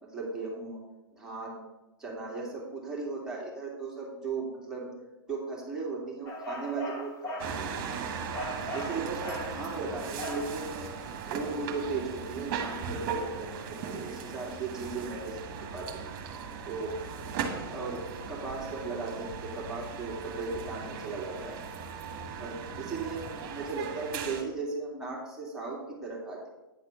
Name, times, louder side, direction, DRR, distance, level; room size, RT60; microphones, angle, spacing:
voice 1, 0.0-0.8 1.1-1.6 2.0-4.9 5.3-7.7 8.7-10.9 11.3-15.4 15.7-16.1 16.7-21.6 22.4-26.5, right 3 dB, 5° right, -4 dB, 2.5 m, -37 dB
sound 1, 6.3-7.6 8.3-9.6 10.2-10.6, equal, 25° left, 1.4 m, -38 dB
sound 2, 7.4-24.4, right 6 dB, 40° right, 1.6 m, -38 dB
9.4 x 4.2 x 7.0 m, 1.1 s
figure-of-eight pair, 110°, 12 cm